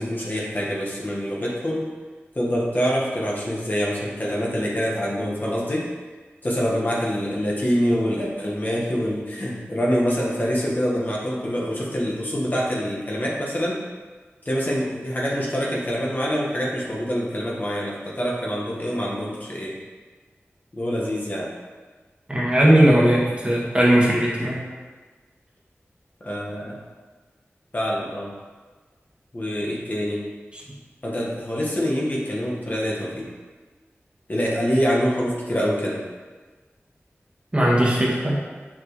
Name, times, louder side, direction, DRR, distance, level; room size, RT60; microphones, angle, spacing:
voice 1, 0.0-1.9 2.3-5.9 6.4-13.8 14.4-19.8 20.7-21.5 26.2-26.8 27.7-28.3 29.3-30.2 31.0-33.3 34.3-36.0, equal, 40° left, -4 dB, 1.5 m, -25 dB
voice 2, 22.3-24.6 30.5-30.6 37.5-38.4, right 1 dB, 25° right, -4 dB, 1.7 m, -18 dB
6.2 x 6.2 x 3.2 m, 1.4 s
wide cardioid pair, 50°, 5 cm